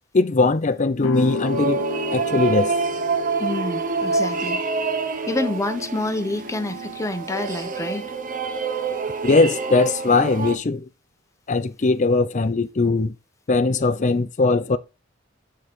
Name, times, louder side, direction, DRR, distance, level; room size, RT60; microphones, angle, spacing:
voice 1, 0.1-1.8 2.1-2.7 9.2-10.8 11.5-13.1 13.5-14.8, left 3 dB, 40° left, 0.6 m, -20 dB
sound 1, 1.0-6.7, left 3 dB, 85° left, 0.7 m, -33 dB
sound 2, 1.2-10.6, right 4 dB, 45° right, 0.9 m, -27 dB
voice 2, 3.4-4.6 5.3-8.1, left 2 dB, 15° left, 0.9 m, -27 dB
9.4 x 3.9 x 3.6 m
head